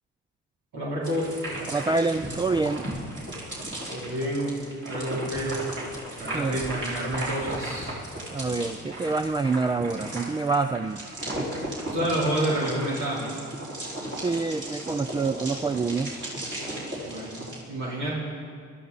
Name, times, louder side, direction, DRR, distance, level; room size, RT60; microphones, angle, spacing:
voice 1, 0.7-1.3 3.9-4.6 4.8-5.7 6.2-8.0 11.9-13.4 17.1-18.2, right 1 dB, 70° right, -6 dB, 3.4 m, -29 dB
sound 1, 1.0-17.6, right 1 dB, 40° right, 4.5 m, -35 dB
voice 2, 1.7-2.8 6.3-6.6 8.3-11.0 14.2-16.1, right 3 dB, 15° right, 9 dB, 0.3 m, -26 dB
21.0 x 13.5 x 4.1 m, 2.1 s
cardioid pair, 90°, 30 cm